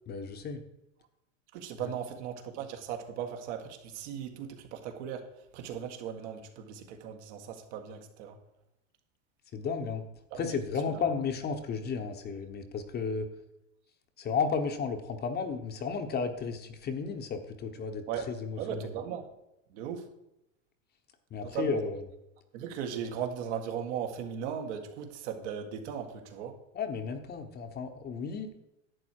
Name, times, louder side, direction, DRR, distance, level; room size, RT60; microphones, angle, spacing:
voice 1, 0.1-0.6 1.8-1.9 9.5-10.0 10.3-13.3 14.2-18.9 21.3-22.0 26.7-28.5, left 5 dB, 25° left, 7 dB, 1.1 m, -33 dB
voice 2, 1.5-8.4 10.3-10.6 10.9-11.0 18.1-19.2 19.7-20.1 21.5-21.8 22.5-26.6, right 8 dB, 65° right, 4 dB, 2.0 m, -37 dB
11.5 x 8.2 x 4.6 m, 0.87 s
supercardioid pair, 130°, 37 cm